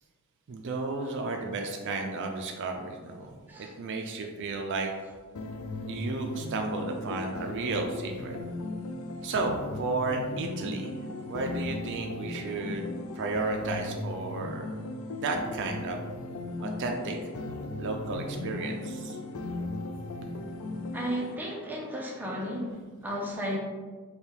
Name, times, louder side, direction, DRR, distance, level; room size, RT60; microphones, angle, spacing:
voice 1, 0.5-4.9 5.9-8.4 9.2-10.9 11.2-12.9 13.1-14.7 15.1-16.0 16.6-17.2 17.8-19.2 20.2-20.3, right 3 dB, 55° right, 3 dB, 0.4 m, -33 dB
sound 1, 5.3-21.3, left 2 dB, 70° left, 0.4 m, -37 dB
voice 2, 20.9-23.6, equal, 10° right, -3 dB, 0.5 m, -34 dB
3.4 x 2.3 x 4.4 m, 1.5 s
head